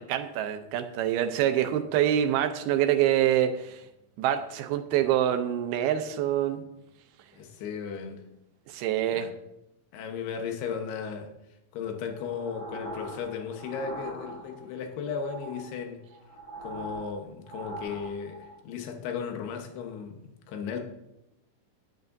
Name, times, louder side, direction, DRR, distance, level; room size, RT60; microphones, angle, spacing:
voice 1, 0.0-3.8 4.2-6.6 8.7-9.3, right 11 dB, 80° right, 8 dB, 2.5 m, -26 dB
voice 2, 7.3-8.2 9.1-9.3 9.9-11.3 11.7-16.0 16.6-20.8, left 6 dB, 80° left, 3 dB, 3.1 m, -35 dB
sound 1, 12.1-14.8 15.1-18.6, right 1 dB, 60° left, 4.5 m, -42 dB
12.0 x 11.0 x 2.6 m, 0.87 s
omnidirectional pair, 4.7 m